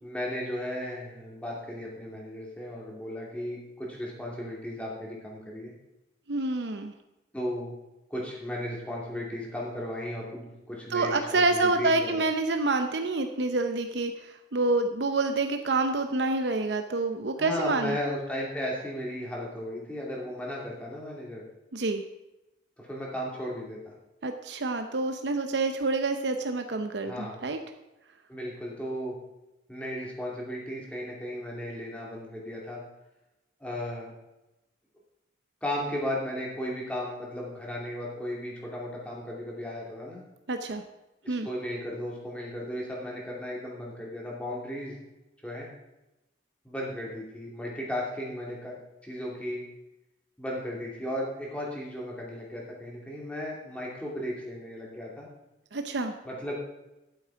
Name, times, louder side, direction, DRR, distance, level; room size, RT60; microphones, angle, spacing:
voice 1, 0.0-5.7 7.3-7.8 8.1-12.2 17.4-21.4 22.8-23.9 27.0-27.4 28.3-29.1 29.7-32.8 33.6-34.1 35.6-40.2 41.2-45.0 45.4-45.7 46.6-48.8 49.0-49.6 50.4-55.3 56.2-56.6, left 1 dB, 5° left, -4 dB, 2.6 m, -35 dB
voice 2, 6.3-6.9 10.9-18.0 21.7-22.0 24.2-27.6 40.5-40.8 41.3-41.5 55.7-56.1, right 3 dB, 70° right, 6 dB, 0.7 m, -27 dB
12.5 x 7.9 x 4.7 m, 0.98 s
head